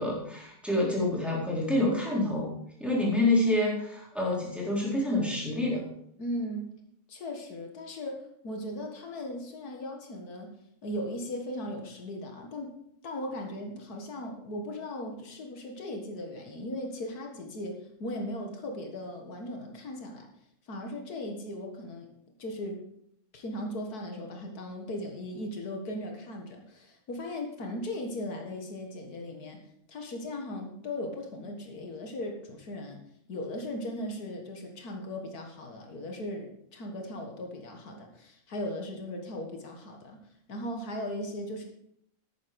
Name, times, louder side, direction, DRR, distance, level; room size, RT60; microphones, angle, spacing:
voice 1, 0.0-2.5 2.8-5.9, left 1 dB, ahead, -5 dB, 4.2 m, -27 dB
voice 2, 6.2-6.7 7.1-10.5 10.8-12.8 13.0-20.3 20.7-22.1 22.4-22.8 23.3-29.6 29.9-33.0 33.3-40.2 40.5-41.7, left 1 dB, 90° left, 3 dB, 2.2 m, -37 dB
10.5 x 9.3 x 5.2 m, 0.74 s
omnidirectional pair, 1.6 m